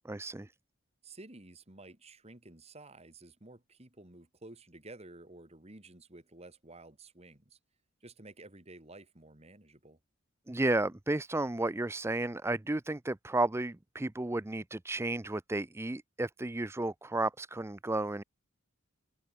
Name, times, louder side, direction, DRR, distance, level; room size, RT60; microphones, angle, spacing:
voice 1, 0.1-0.5 10.5-18.2, right 2 dB, 10° right, 0.5 m, -33 dB
voice 2, 1.0-7.6 8.0-10.0, right 2 dB, 30° right, 2.4 m, -52 dB
head